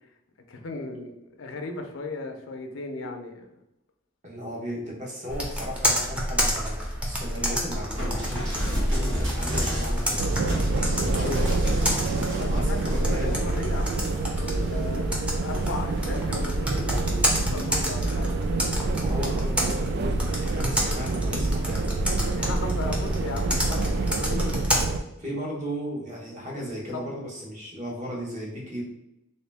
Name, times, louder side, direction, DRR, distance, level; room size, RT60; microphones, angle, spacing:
voice 1, 0.5-3.5 12.3-15.0 15.4-18.4 22.3-24.4 26.9-27.1, left 2 dB, 75° left, 5 dB, 0.5 m, -36 dB
voice 2, 4.2-10.2 10.7-11.5 12.5-13.4 18.9-20.2 20.5-21.9 24.3-24.5 25.2-28.8, equal, 40° right, -3 dB, 1.0 m, -35 dB
Computer keyboard, 5.3-24.8, equal, 5° right, 0.6 m, -29 dB
sound 1, 8.0-14.9 15.4-16.0 16.9-17.2, equal, 85° right, 1.4 m, -31 dB
sound 2, 10.2-25.0, right 3 dB, 55° right, 0.3 m, -28 dB
3.0 x 2.8 x 3.4 m, 0.85 s
head